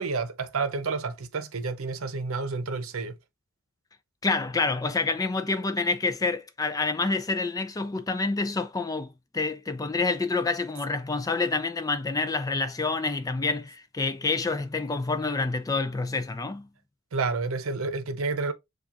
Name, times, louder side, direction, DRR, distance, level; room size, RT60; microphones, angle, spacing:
voice 1, 0.0-3.2 17.1-18.5, right 4 dB, 85° right, 0.7 m, -30 dB
voice 2, 4.2-16.7, left 3 dB, 15° left, 0.3 m, -28 dB
7.1 x 2.4 x 2.4 m
head